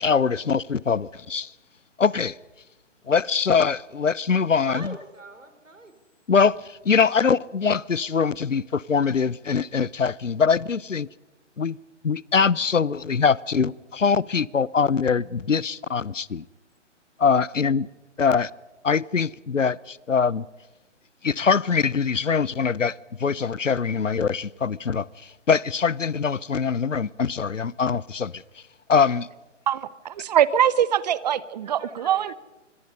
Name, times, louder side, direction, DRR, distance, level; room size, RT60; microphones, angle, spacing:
voice 1, 0.0-1.5 2.0-2.4 3.1-4.9 6.3-11.1 11.6-11.8 12.0-16.4 17.2-17.9 18.2-18.5 18.8-20.5 21.2-28.4 28.9-29.3, left 5 dB, 85° left, 0.8 m, -23 dB
voice 2, 4.6-5.9 31.6-32.4, right 2 dB, 85° right, 4.5 m, -41 dB
voice 3, 29.7-32.3, right 10 dB, 35° right, 1.1 m, -23 dB
27.5 x 25.5 x 5.5 m
figure-of-eight pair, 135°, 37 cm